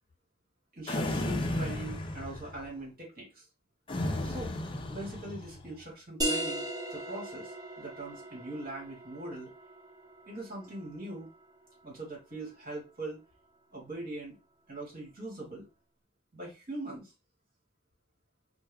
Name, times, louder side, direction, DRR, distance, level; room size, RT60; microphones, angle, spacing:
voice 1, 0.7-3.3 4.2-4.5 4.9-6.6 6.9-9.5 10.3-11.3 11.8-13.2 13.7-14.4 14.7-15.6 16.3-17.1, right 2 dB, 55° right, -3 dB, 1.6 m, -41 dB
sound 1, 0.9-2.7 3.9-5.7, left 1 dB, 25° left, 0.5 m, -34 dB
sound 2, 6.2-11.6, right 1 dB, 20° right, 0.8 m, -38 dB
3.4 x 2.2 x 3.3 m, 0.28 s
head